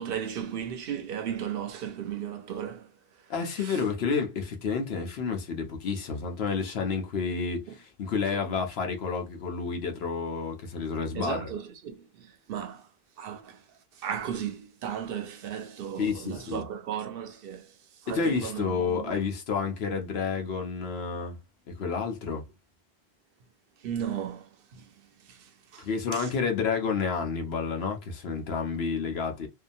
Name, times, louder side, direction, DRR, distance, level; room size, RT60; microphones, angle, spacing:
voice 1, 0.0-3.8 7.7-7.8 8.3-8.4 11.1-12.9 13.2-19.2 23.8-26.3, right 9 dB, 65° right, 0.7 m, -36 dB
voice 2, 3.3-11.5 16.0-16.6 18.1-21.4 21.7-22.5 25.8-29.5, left 5 dB, 80° left, 1.0 m, -30 dB
2.7 x 2.2 x 2.5 m
omnidirectional pair, 1.1 m